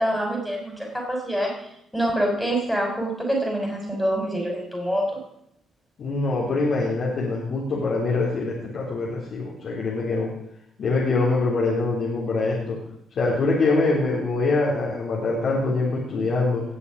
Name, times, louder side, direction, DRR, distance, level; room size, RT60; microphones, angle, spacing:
voice 1, 0.0-1.5 1.9-5.2, right 1 dB, ahead, 0 dB, 5.8 m, -25 dB
voice 2, 6.0-10.3 10.8-12.8 13.1-16.6, left 3 dB, 60° left, -5 dB, 3.9 m, -24 dB
19.5 x 7.0 x 6.5 m, 0.76 s
hypercardioid pair, 45°, 0 cm